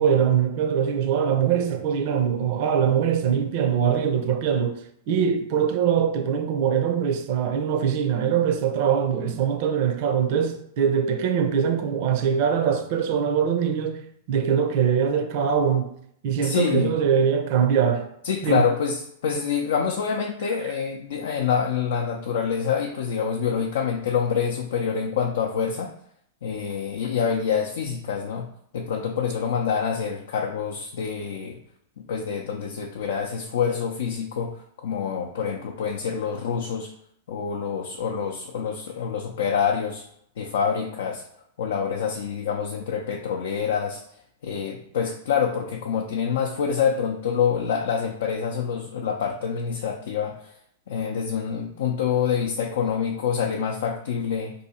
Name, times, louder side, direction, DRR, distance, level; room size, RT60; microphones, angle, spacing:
voice 1, 0.0-4.8 5.1-14.0 14.3-15.9 16.2-18.1 18.4-18.6 20.6-20.7, right 7 dB, 50° right, 0.5 m, -22 dB
voice 2, 16.4-17.0 18.2-25.9 26.4-28.5 28.7-31.6 32.0-36.9 37.3-40.0 40.4-41.2 41.6-44.0 44.4-50.5 50.9-54.5, left 7 dB, 65° left, 0.4 m, -26 dB
2.7 x 2.6 x 4.2 m
hypercardioid pair, 105°, 0 cm